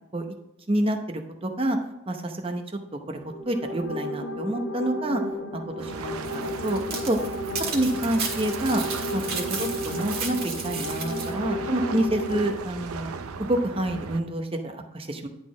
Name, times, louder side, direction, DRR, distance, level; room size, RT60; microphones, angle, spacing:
voice 1, 0.7-1.8 2.1-2.6 3.1-5.2 5.8-6.8 7.1-7.2 7.7-8.8 9.1-13.1 13.4-15.3, right 1 dB, 25° right, 5 dB, 0.8 m, -28 dB
sound 1, 3.1-12.5, left 1 dB, 65° left, 1.0 m, -33 dB
sound 2, 5.8-14.2, right 4 dB, 85° right, 0.6 m, -37 dB
sound 3, 6.2-11.3, right 5 dB, 45° right, 1.6 m, -34 dB
10.5 x 4.1 x 4.9 m, 0.91 s
head